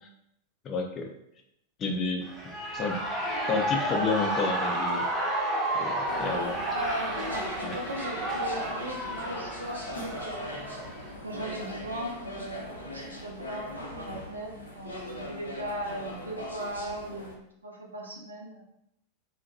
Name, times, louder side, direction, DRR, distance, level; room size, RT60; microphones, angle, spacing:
voice 1, 0.6-1.1 1.8-2.2 2.7-3.0 3.5-5.1 5.8-6.6 7.6-7.8, left 4 dB, 30° left, 2 dB, 0.4 m, -30 dB
Shout / Cheering, 2.2-11.2, right 1 dB, 15° right, 0.6 m, -31 dB
sound 1, 6.1-17.3, left 1 dB, 80° left, 0.5 m, -40 dB
voice 2, 6.7-10.5 11.2-18.6, right 1 dB, 75° right, 0 dB, 0.5 m, -38 dB
2.6 x 2.2 x 2.5 m, 0.78 s
figure-of-eight pair, 90°, 0 cm